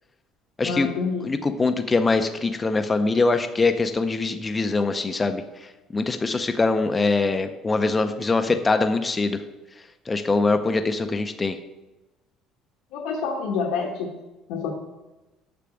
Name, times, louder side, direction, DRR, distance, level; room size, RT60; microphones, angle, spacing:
voice 1, 0.6-1.4 12.9-14.1 14.5-14.7, left 5 dB, 80° left, 0 dB, 1.3 m, -27 dB
voice 2, 1.2-5.4 5.9-9.4 10.1-11.6, left 3 dB, 15° left, 8 dB, 0.5 m, -23 dB
6.8 x 6.8 x 6.2 m, 1.1 s
cardioid pair, 165°, 0 cm